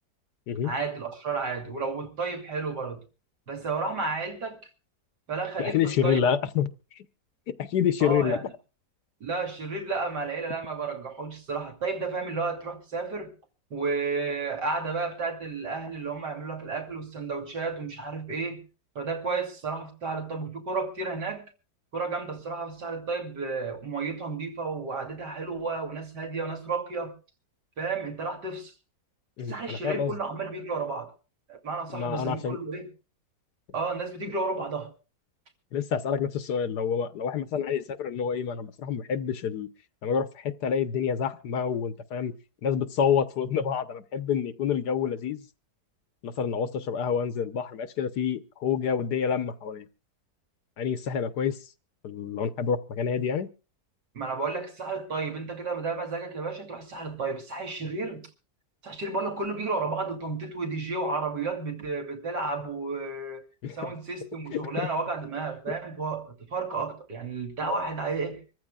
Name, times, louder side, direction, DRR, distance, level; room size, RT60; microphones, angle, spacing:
voice 1, 0.6-3.0 3.5-4.7 5.3-6.3 8.0-8.4 9.2-13.3 13.7-18.6 19.0-21.5 21.9-27.1 27.8-28.7 29.5-31.1 31.5-32.9 33.7-34.9 54.1-58.3 58.8-63.4 63.7-68.4, right 4 dB, 80° right, 3.4 m, -32 dB
voice 2, 5.6-6.7 7.5-8.4 29.4-30.1 31.9-32.6 35.7-39.7 40.0-42.3 42.6-45.4 46.2-49.9 50.8-51.6 52.0-53.5 63.6-63.9 64.5-64.9 65.7-65.8, left 7 dB, 75° left, 1.6 m, -28 dB
25.5 x 14.5 x 2.3 m
omnidirectional pair, 1.8 m